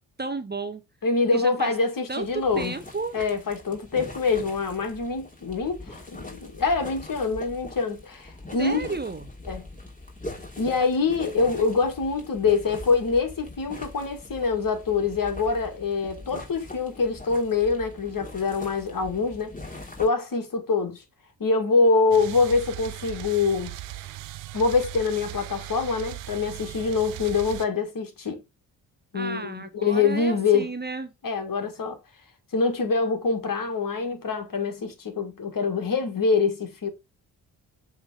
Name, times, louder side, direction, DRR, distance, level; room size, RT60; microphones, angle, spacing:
voice 1, 0.2-0.8 1.3-1.7 2.1-3.2 8.6-9.2 29.1-31.1, right 3 dB, 20° right, 1.0 m, -33 dB
voice 2, 1.0-2.7 3.1-9.0 9.5-9.7 10.6-19.5 20.0-21.0 21.4-23.7 24.5-28.4 29.1-30.7 31.2-32.0 32.5-36.9, left 4 dB, 45° left, 2.2 m, -25 dB
sound 1, 2.2-20.1, left 2 dB, 20° left, 3.0 m, -42 dB
sound 2, 22.1-27.7, right 14 dB, 85° right, 0.7 m, -38 dB
7.1 x 3.6 x 5.0 m
hypercardioid pair, 45°, 44 cm